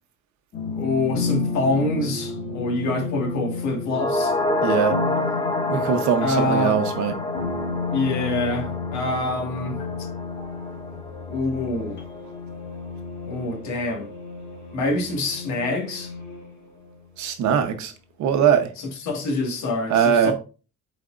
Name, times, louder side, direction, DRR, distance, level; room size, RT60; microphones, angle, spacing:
sound 1, 0.5-17.1, left 4 dB, 35° left, 1.8 m, -32 dB
voice 1, 0.8-4.3 6.2-6.8 7.9-9.8 11.3-12.0 13.3-14.1 14.7-16.1 19.0-20.3, left 2 dB, 55° left, 1.9 m, -26 dB
sound 2, 3.9-12.4 12.7-12.8, left 2 dB, 15° left, 0.9 m, -28 dB
voice 2, 4.6-5.0 5.7-7.1 17.2-17.9 18.2-18.7 19.9-20.3, right 8 dB, 60° right, 1.0 m, -21 dB
8.2 x 4.5 x 2.6 m
cardioid pair, 170°, 32 cm